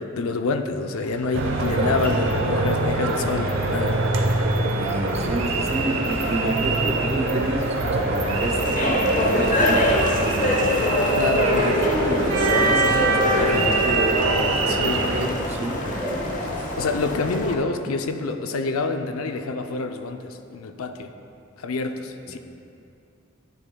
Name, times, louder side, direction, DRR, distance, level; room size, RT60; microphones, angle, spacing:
voice 1, 0.0-4.0 11.1-11.7 14.7-15.0 16.8-21.1 21.6-22.4, left 3 dB, 90° left, 7 dB, 0.5 m, -27 dB
sound 1, 0.9-17.0, equal, 10° left, 1.1 m, -39 dB
sound 2, 1.3-15.3, right 2 dB, 70° right, 0.8 m, -23 dB
voice 2, 4.7-10.9 11.6-14.2 14.5-16.0 22.3-22.4, right 1 dB, 30° right, 2 dB, 0.7 m, -29 dB
sound 3, 8.0-17.6, left 1 dB, 40° left, 0.8 m, -25 dB
11.0 x 9.8 x 2.3 m, 2.6 s
head